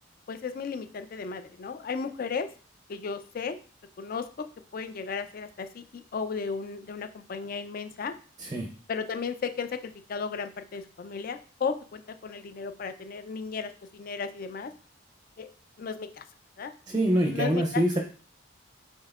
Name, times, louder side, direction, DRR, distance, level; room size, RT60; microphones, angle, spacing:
voice 1, 0.3-2.5 2.9-3.6 4.0-4.5 4.7-8.2 8.9-14.7 15.4-15.5 15.8-16.3 16.6-16.7 17.3-17.8, left 5 dB, 45° left, 10 dB, 0.4 m, -34 dB
voice 2, 8.4-8.7 16.9-18.0, right 1 dB, 20° right, 3 dB, 0.5 m, -25 dB
5.5 x 3.6 x 2.3 m, 0.40 s
head